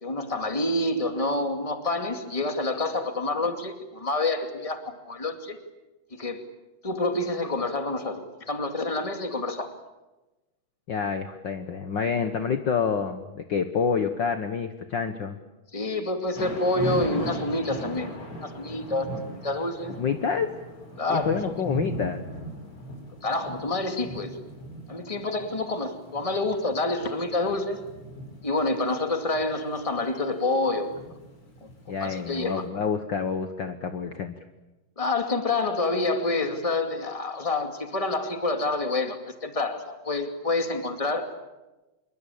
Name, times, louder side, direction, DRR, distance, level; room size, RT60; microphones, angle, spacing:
voice 1, 0.0-5.6 6.1-6.4 6.8-9.7 15.7-18.1 18.4-19.9 21.0-21.5 23.2-24.4 24.9-27.8 28.4-30.9 32.0-32.6 35.0-41.3, left 2 dB, 10° left, 6 dB, 1.9 m, -28 dB
voice 2, 10.9-15.4 20.0-20.5 21.1-22.2 31.9-34.3, left 6 dB, 60° left, 8 dB, 1.2 m, -28 dB
Thunder / Rain, 16.3-32.4, equal, 40° left, 6.5 m, -38 dB
27.0 x 23.5 x 8.6 m, 1.1 s
omnidirectional pair, 3.8 m